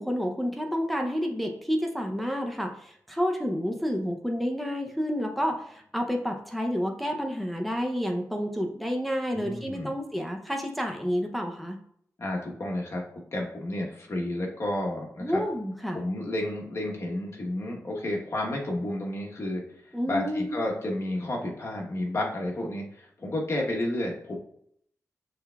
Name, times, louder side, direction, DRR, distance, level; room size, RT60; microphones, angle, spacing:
voice 1, 0.0-11.8 15.2-16.0 19.9-20.6, equal, ahead, 2 dB, 0.5 m, -29 dB
voice 2, 9.3-9.9 12.2-13.0 13.3-15.4 15.9-24.4, left 1 dB, 50° left, -1 dB, 1.1 m, -31 dB
6.4 x 3.4 x 2.3 m, 0.67 s
wide cardioid pair, 100°, 6 cm